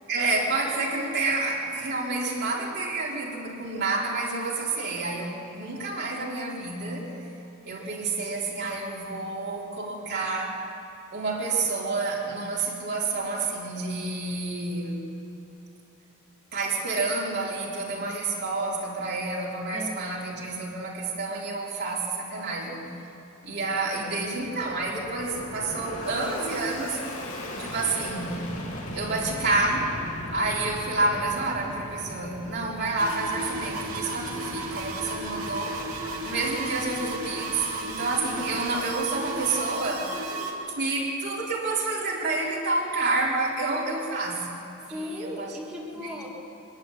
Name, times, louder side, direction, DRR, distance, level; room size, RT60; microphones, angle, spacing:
voice 1, 0.1-7.1 7.6-10.6 11.1-15.0 16.5-22.9 23.4-27.0 27.6-28.4 28.9-29.9 30.3-35.8 36.2-40.1 40.8-44.6 45.1-45.5 46.0-46.3, right 3 dB, 55° right, -4 dB, 4.2 m, -29 dB
voice 2, 19.7-20.2 23.9-24.1 39.6-40.9 44.8-46.3, left 1 dB, 5° right, -5 dB, 2.5 m, -39 dB
Fixed-wing aircraft airplane, 23.6-40.2, left 1 dB, 90° left, 2.9 m, -40 dB
sound 1, 33.0-40.5, right 2 dB, 85° right, 3.1 m, -34 dB
24.5 x 11.5 x 9.9 m, 2.9 s
head